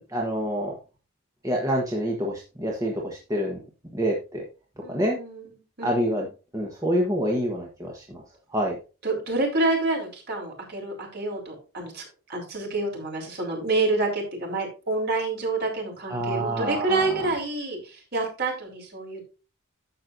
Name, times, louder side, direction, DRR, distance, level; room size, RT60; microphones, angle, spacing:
voice 1, 0.1-0.7 1.4-3.6 3.9-4.4 4.9-5.2 5.8-6.3 6.5-8.2 8.5-8.8 16.1-17.1, equal, 15° right, -1 dB, 1.2 m, -27 dB
voice 2, 4.8-6.3 9.0-19.3, right 2 dB, 45° right, 0 dB, 3.9 m, -28 dB
11.5 x 7.6 x 2.6 m, 0.33 s
head